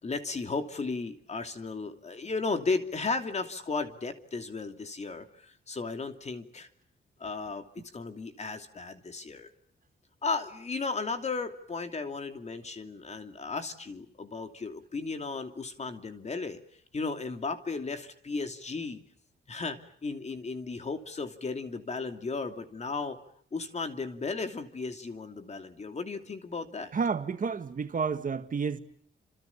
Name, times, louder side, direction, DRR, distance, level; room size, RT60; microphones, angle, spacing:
voice 1, 0.0-6.7 7.2-9.5 10.2-16.6 16.9-19.0 19.5-23.2 23.5-26.9, left 4 dB, 35° left, 2.8 m, -35 dB
voice 2, 26.9-28.8, right 5 dB, 40° right, 1.8 m, -30 dB
29.5 x 27.5 x 7.2 m
wide cardioid pair, 165°, 20 cm